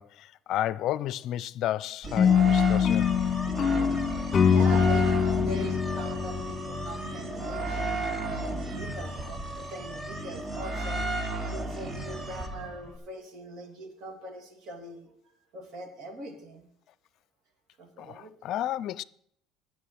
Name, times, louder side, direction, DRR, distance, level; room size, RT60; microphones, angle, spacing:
voice 1, 0.0-3.1 18.0-19.0, left 13 dB, 60° left, 0.4 m, -32 dB
sound 1, 2.0-13.0, right 2 dB, 25° right, 1.3 m, -33 dB
sound 2, 2.2-7.3, left 7 dB, 30° left, 1.5 m, -24 dB
voice 2, 4.1-5.1 5.4-11.1 11.5-15.1 15.5-16.7 17.8-18.3, right 2 dB, 55° right, 2.6 m, -42 dB
9.9 x 6.2 x 7.8 m
supercardioid pair, 105°, 0 cm